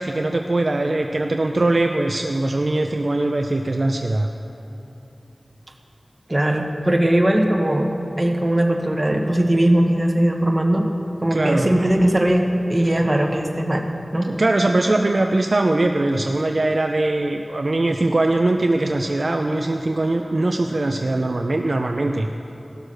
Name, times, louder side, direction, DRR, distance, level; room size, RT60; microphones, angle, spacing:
voice 1, 0.0-4.3 11.3-11.7 12.9-13.0 14.2-22.3, right 2 dB, 60° right, 4 dB, 0.5 m, -21 dB
voice 2, 6.3-7.9 8.2-10.9 11.2-14.3, right 1 dB, 25° right, 2 dB, 1.2 m, -19 dB
16.5 x 6.5 x 6.4 m, 2.8 s
wide cardioid pair, 55°, 0 cm